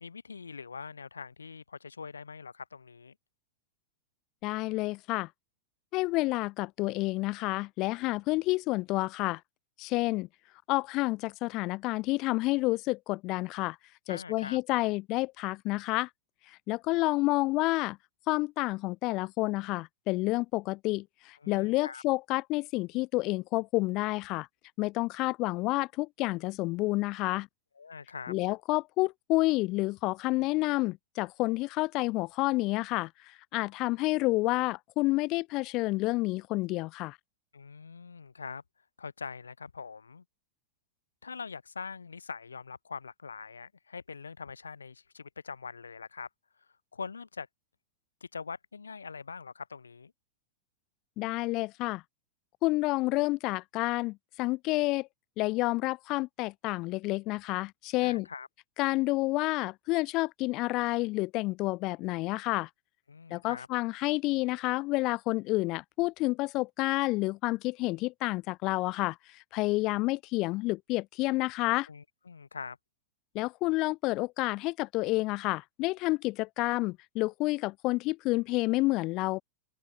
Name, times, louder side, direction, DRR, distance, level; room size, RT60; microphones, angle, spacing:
voice 1, 0.0-3.1 14.1-14.6 21.4-22.0 27.8-28.3 37.5-38.6 39.0-40.2 41.2-46.3 46.9-47.5 48.2-50.1 58.0-58.5 63.1-63.7 71.9-72.8, left 5 dB, 80° left, 1.1 m, -43 dB
voice 2, 4.4-5.3 5.9-9.4 9.8-10.3 10.7-13.8 14.1-16.1 16.5-18.0 18.3-24.5 24.8-27.5 28.3-37.2 51.2-52.0 52.6-55.1 55.4-58.3 58.8-62.7 63.3-69.2 69.5-71.9 73.3-79.4, left 21 dB, 40° left, 0.5 m, -29 dB
open air
figure-of-eight pair, 95°, 0 cm